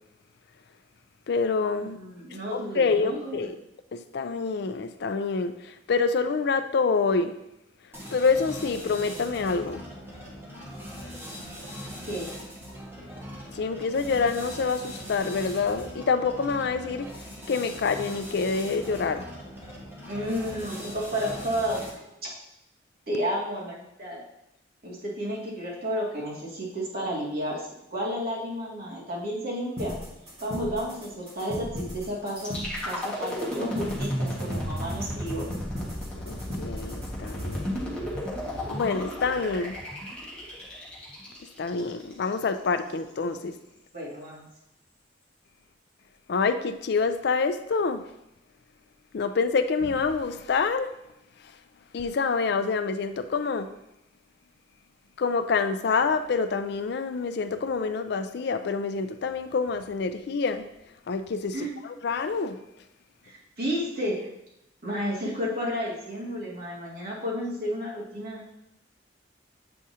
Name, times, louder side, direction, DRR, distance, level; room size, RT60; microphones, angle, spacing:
voice 1, 1.3-2.0 2.5-3.6 3.9-7.3 8.1-9.8 13.5-19.3 36.3-37.8 38.7-39.8 41.6-43.6 46.3-48.0 49.1-50.9 51.4-51.5 51.9-53.7 55.2-60.7 61.1-62.6, left 4 dB, 65° left, 9 dB, 0.4 m, -27 dB
voice 2, 1.8-3.5 12.1-12.3 20.1-21.8 22.2-22.3 23.1-24.2 24.8-30.0 30.4-35.5 43.9-44.5 61.5-61.8 63.2-64.2 64.8-68.4, equal, 60° right, -6 dB, 2.2 m, -32 dB
sound 1, 7.9-22.1, equal, 15° right, 1.5 m, -41 dB
sound 2, 29.8-37.8, equal, 35° right, 1.8 m, -39 dB
sound 3, 32.4-42.3, equal, 5° left, 1.5 m, -33 dB
7.7 x 4.9 x 2.8 m, 0.86 s
head